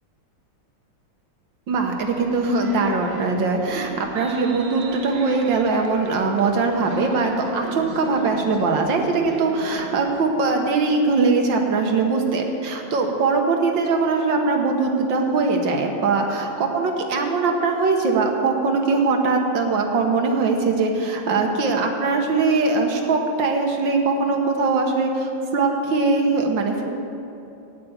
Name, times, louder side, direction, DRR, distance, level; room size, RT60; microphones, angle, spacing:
sound 1, 1.7-10.2, right 4 dB, 50° right, 0.7 m, -38 dB
voice 1, 1.7-26.8, right 3 dB, 65° right, 3 dB, 1.8 m, -21 dB
9.0 x 8.5 x 8.6 m, 2.8 s
omnidirectional pair, 2.3 m